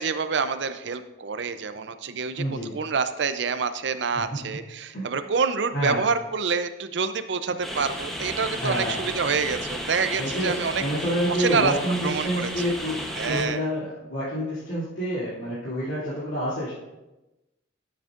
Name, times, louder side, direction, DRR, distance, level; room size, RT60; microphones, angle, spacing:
voice 1, 0.0-2.4 2.7-10.8 11.4-11.7 12.0-12.7 13.2-13.6, right 5 dB, 65° right, 11 dB, 0.5 m, -27 dB
voice 2, 2.3-2.7 4.1-4.5 4.9-5.1 5.7-6.0 8.6-9.1 10.2-16.7, equal, 85° left, -11 dB, 2.7 m, -28 dB
sound 1, 7.6-13.5, equal, ahead, 0.9 m, -33 dB
12.5 x 7.8 x 2.5 m, 1.0 s
head